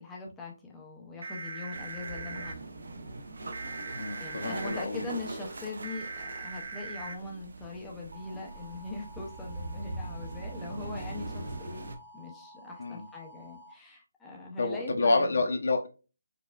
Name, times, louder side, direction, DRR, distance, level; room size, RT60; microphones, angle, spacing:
voice 1, 0.0-2.5 4.2-11.8 12.1-15.4, left 2 dB, 5° left, 0.5 m, -41 dB
sound 1, 1.2-2.5 3.5-4.8 5.8-7.1 8.1-13.7, right 3 dB, 45° right, 0.5 m, -43 dB
sound 2, 1.7-12.0, right 2 dB, 70° right, 0.8 m, -42 dB
voice 2, 3.9-5.1 12.8-13.1 14.6-15.9, left 3 dB, 55° left, 0.7 m, -28 dB
4.9 x 2.3 x 2.3 m
hypercardioid pair, 180°, 0 cm